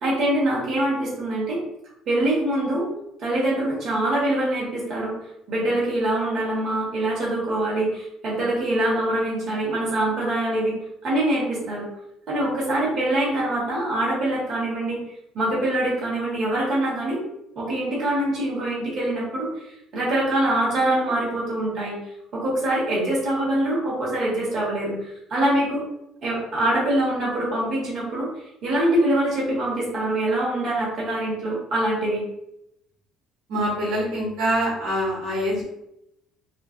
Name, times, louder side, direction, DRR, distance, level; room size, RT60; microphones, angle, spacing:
voice 1, 0.0-1.6 2.1-2.8 3.2-5.1 5.5-10.7 11.0-11.8 12.3-15.0 15.3-17.2 17.5-19.7 19.9-22.0 22.3-25.8 26.2-28.3 28.6-32.2, right 1 dB, 45° right, -6 dB, 1.1 m, -24 dB
voice 2, 33.5-35.6, equal, 80° right, -5 dB, 1.0 m, -24 dB
2.5 x 2.4 x 2.4 m, 0.83 s
cardioid pair, 135°, 0 cm